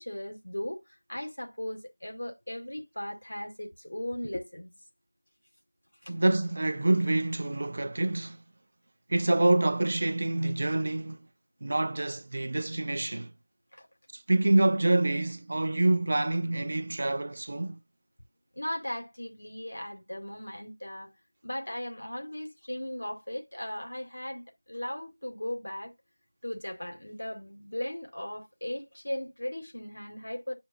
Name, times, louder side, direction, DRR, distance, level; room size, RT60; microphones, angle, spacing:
voice 1, 0.0-4.7 6.0-6.1 13.7-13.9 18.6-21.1 21.4-25.9 26.4-30.6, left 1 dB, 75° left, 2.1 m, -37 dB
voice 2, 6.1-8.4 9.1-11.2 11.6-13.3 14.1-17.8, right 2 dB, 30° right, 0.3 m, -26 dB
8.8 x 5.0 x 2.7 m
figure-of-eight pair, 175°, 0 cm